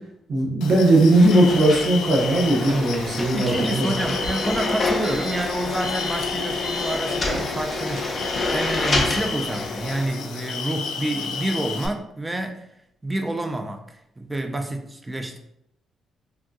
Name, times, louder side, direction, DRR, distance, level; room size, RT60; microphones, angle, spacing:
voice 1, 0.3-3.9, right 1 dB, 50° right, -3 dB, 0.8 m, -18 dB
sound 1, 0.6-11.9, left 6 dB, 85° left, 0.4 m, -32 dB
sound 2, 1.1-10.1, left 3 dB, 35° left, 0.7 m, -28 dB
sound 3, 2.2-8.4, right 1 dB, 75° right, 1.1 m, -36 dB
voice 2, 3.3-12.6 13.0-13.8 14.2-15.4, right 1 dB, 15° right, 5 dB, 0.4 m, -28 dB
3.5 x 2.6 x 2.3 m, 0.78 s
cardioid pair, 90°, 0 cm